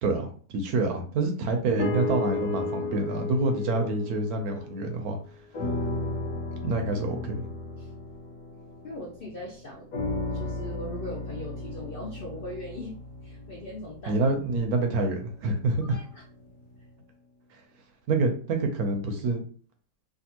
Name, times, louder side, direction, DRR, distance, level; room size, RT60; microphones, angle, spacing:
voice 1, 0.0-5.2 6.6-7.5 14.1-16.0 18.1-19.4, right 2 dB, 70° right, 4 dB, 1.0 m, -27 dB
sound 1, 1.8-5.1 5.5-9.3 9.9-14.1 14.8-14.9, left 2 dB, 65° left, 1.1 m, -33 dB
voice 2, 8.8-9.9 10.3-13.0 13.2-14.2 15.9-16.2, left 1 dB, 80° left, -1 dB, 0.4 m, -39 dB
3.4 x 2.5 x 2.8 m, 0.43 s
omnidirectional pair, 1.8 m